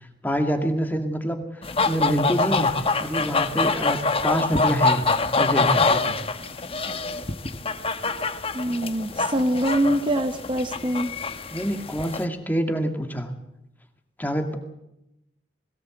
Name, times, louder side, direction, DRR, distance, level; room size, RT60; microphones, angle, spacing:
voice 1, 0.2-2.7 3.0-5.0 5.4-6.2 11.5-13.3 14.2-14.6, equal, 10° left, 5 dB, 2.2 m, -26 dB
sound 1, 1.6-12.3, left 3 dB, 35° left, 1.1 m, -25 dB
voice 2, 8.5-11.1, right 1 dB, 30° right, 7 dB, 0.9 m, -24 dB
21.5 x 17.5 x 7.8 m, 0.88 s
head